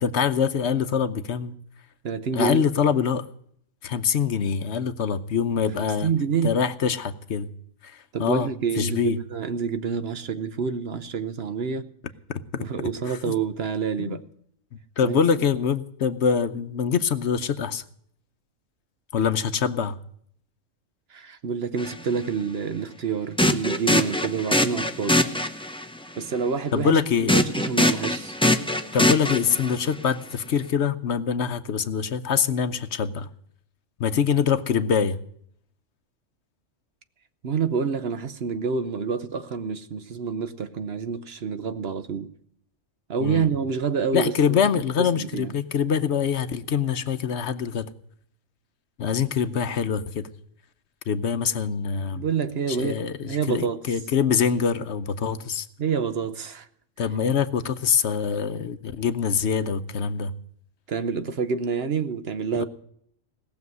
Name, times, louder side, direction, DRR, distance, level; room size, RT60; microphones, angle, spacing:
voice 1, 0.0-1.5 2.3-3.3 3.8-6.1 6.4-7.5 7.8-8.5 8.8-9.2 12.3-13.3 14.0-14.2 15.0-17.8 19.1-20.0 26.7-27.4 28.9-33.3 34.0-35.2 43.2-43.5 44.1-47.9 49.0-50.3 51.1-52.3 52.7-55.7 57.0-60.3 62.6-62.7, left 7 dB, 65° left, 11 dB, 1.0 m, -24 dB
voice 2, 2.0-2.6 5.8-6.5 8.1-11.9 12.6-14.2 15.0-15.2 21.1-25.2 26.2-28.4 37.4-42.3 43.1-45.5 52.1-53.8 55.8-56.7 60.9-62.6, right 6 dB, 55° right, 11 dB, 1.0 m, -28 dB
sound 1, 21.8-21.9 23.4-25.8 27.3-29.9, left 1 dB, 5° left, 0.6 m, -23 dB
18.0 x 7.0 x 9.4 m, 0.66 s
omnidirectional pair, 1.3 m